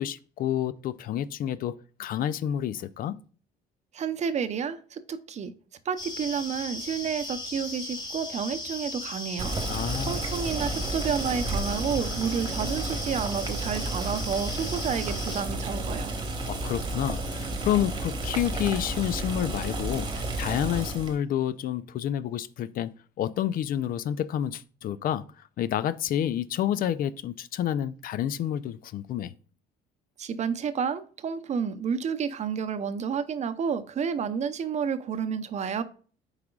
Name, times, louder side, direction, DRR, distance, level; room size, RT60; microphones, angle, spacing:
voice 1, 0.0-3.2 9.7-10.2 16.5-22.9 23.2-25.2 25.6-29.3, left 10 dB, 55° left, 0.4 m, -29 dB
voice 2, 3.9-5.5 5.8-9.6 10.0-16.1 30.2-35.8, right 7 dB, 45° right, 0.6 m, -30 dB
sound 1, 6.0-15.4, left 2 dB, 25° left, 2.0 m, -37 dB
Boiling, 9.4-21.2, right 2 dB, 25° right, 1.2 m, -32 dB
8.5 x 4.9 x 2.3 m
cardioid pair, 110°, 17 cm